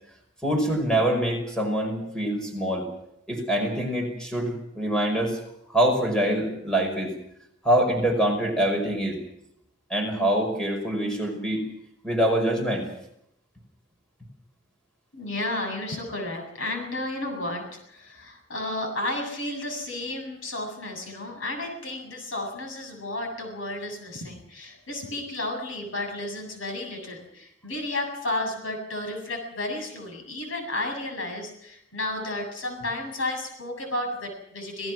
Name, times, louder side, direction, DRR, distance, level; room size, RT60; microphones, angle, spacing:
voice 1, 0.4-2.9 3.3-5.4 5.7-7.1 7.6-9.2 9.9-11.6 12.0-12.9, right 1 dB, 5° left, 2 dB, 5.4 m, -25 dB
voice 2, 15.1-34.9, left 1 dB, 85° left, 4 dB, 7.6 m, -32 dB
27.5 x 17.5 x 6.2 m, 0.78 s
head